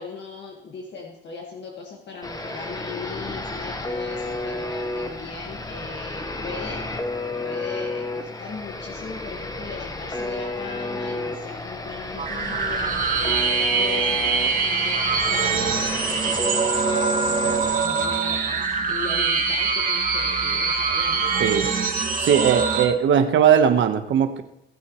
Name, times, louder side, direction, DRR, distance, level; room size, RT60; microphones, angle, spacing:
voice 1, 0.0-7.1 7.4-21.3, left 4 dB, 60° left, 0 dB, 1.9 m, -38 dB
sound 1, 2.2-17.8, left 2 dB, 20° left, 1.3 m, -31 dB
sound 2, 12.2-22.8, right 5 dB, 45° right, 2.0 m, -23 dB
voice 2, 22.2-24.4, right 8 dB, 75° right, 7 dB, 1.3 m, -19 dB
20.0 x 8.2 x 3.2 m, 0.87 s
cardioid pair, 90°, 20 cm